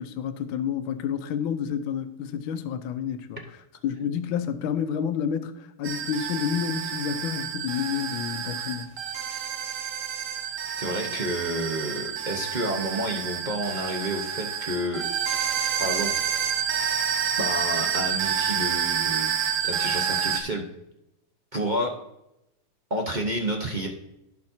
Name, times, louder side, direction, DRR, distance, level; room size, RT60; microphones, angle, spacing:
voice 1, 0.0-3.4 3.8-8.9, left 8 dB, 70° left, 1.4 m, -29 dB
sound 1, 5.8-20.4, right 8 dB, 85° right, 0.7 m, -29 dB
voice 2, 10.8-15.0 15.8-16.4 17.4-20.6 21.5-21.9 22.9-23.9, right 1 dB, 40° right, 0.7 m, -30 dB
15.5 x 5.3 x 2.7 m
omnidirectional pair, 2.3 m